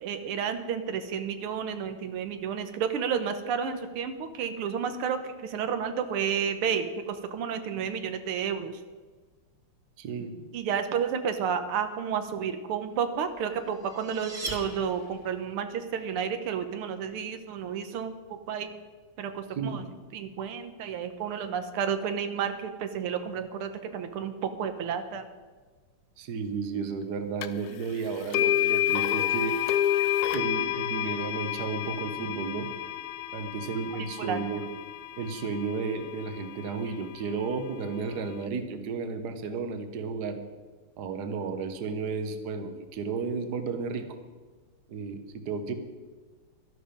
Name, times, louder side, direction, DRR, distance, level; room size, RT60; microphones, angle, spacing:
voice 1, 0.0-8.8 10.5-18.7 19.2-25.3 34.0-34.4, right 7 dB, 85° right, 8 dB, 1.8 m, -31 dB
voice 2, 10.0-10.3 19.6-19.8 26.2-29.6 30.3-32.7 33.3-34.6 35.2-40.4 41.0-44.1 44.9-45.7, right 4 dB, 55° right, 8 dB, 1.5 m, -33 dB
sound 1, 13.4-15.4, right 2 dB, 20° right, 1.9 m, -40 dB
sound 2, 27.4-27.5 28.3-36.4, left 12 dB, 80° left, 0.8 m, -29 dB
12.5 x 11.5 x 5.2 m, 1.4 s
omnidirectional pair, 2.4 m